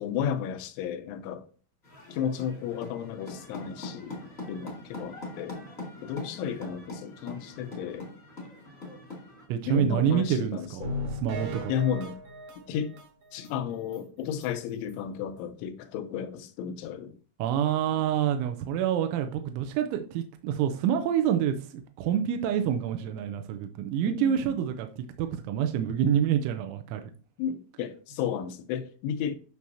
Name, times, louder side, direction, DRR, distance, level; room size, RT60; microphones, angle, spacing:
voice 1, 0.0-1.5 2.1-4.2 4.5-5.6 6.0-8.1 9.7-10.9 11.7-12.2 12.7-12.9 13.3-17.2 24.1-24.6 27.4-29.4, left 8 dB, 85° left, 3.1 m, -33 dB
sound 1, 1.8-9.4, left 2 dB, 35° left, 1.0 m, -42 dB
voice 2, 9.5-10.9 11.2-11.7 17.4-24.9 25.2-27.0, right 9 dB, 90° right, 3.1 m, -27 dB
sound 2, 10.8-13.5 13.9-14.0 14.4-14.5 14.9-15.0, left 1 dB, 60° right, 1.9 m, -37 dB
12.0 x 6.2 x 2.9 m
omnidirectional pair, 5.5 m